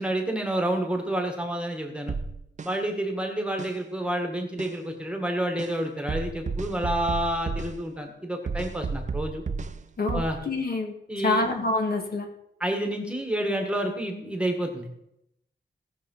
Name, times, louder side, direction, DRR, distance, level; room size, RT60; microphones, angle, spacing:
voice 1, 0.0-2.2 2.6-9.4 10.1-10.4 11.1-11.5 12.6-14.9, right 1 dB, 5° right, 3 dB, 1.7 m, -29 dB
sound 1, 2.1-2.7 3.6-3.7 4.6-4.7 5.6-5.7 6.1-7.8 8.5-9.8 10.1-10.4, right 4 dB, 35° right, 0.6 m, -32 dB
voice 2, 10.0-12.3, left 3 dB, 50° left, 2 dB, 2.1 m, -27 dB
18.0 x 6.8 x 5.5 m, 0.80 s
wide cardioid pair, 160°, 20 cm